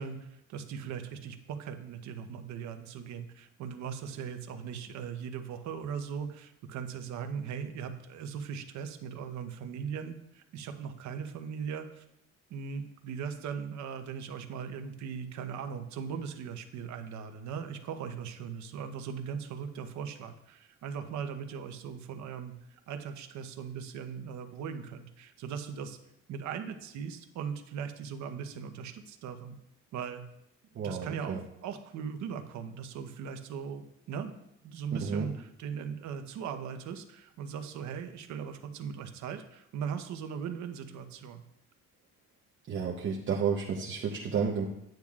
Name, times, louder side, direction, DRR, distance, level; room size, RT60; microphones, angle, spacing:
voice 1, 0.0-12.0 12.5-26.0 26.3-29.6 29.9-30.2 30.8-34.3 34.6-41.4, right 7 dB, 75° right, 7 dB, 1.0 m, -39 dB
voice 2, 30.7-31.4 35.0-35.3 42.7-44.6, right 6 dB, 40° right, -2 dB, 0.9 m, -31 dB
12.0 x 9.1 x 2.4 m, 0.81 s
cardioid pair, 160°, 29 cm